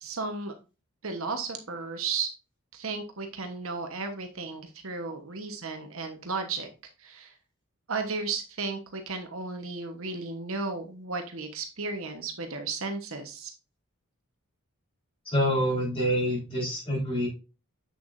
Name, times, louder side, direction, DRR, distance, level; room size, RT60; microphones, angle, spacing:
voice 1, 0.0-0.5 1.0-2.3 2.7-6.7 7.0-7.3 7.9-13.5, right 4 dB, 65° right, 5 dB, 1.2 m, -34 dB
voice 2, 15.3-17.3, equal, 25° left, -4 dB, 4.6 m, -26 dB
8.3 x 6.8 x 2.6 m, 0.31 s
head